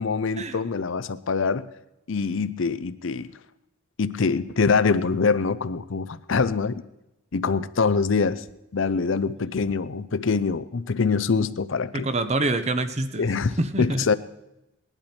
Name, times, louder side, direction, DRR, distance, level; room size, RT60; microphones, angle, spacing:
voice 1, 0.0-1.7 2.1-3.3 4.0-6.8 7.3-8.4 8.7-12.1 13.2-14.1, left 4 dB, 60° left, 15 dB, 0.6 m, -24 dB
voice 2, 11.9-13.3 13.6-14.1, right 2 dB, 30° right, 11 dB, 0.8 m, -26 dB
19.5 x 11.5 x 4.4 m, 0.91 s
head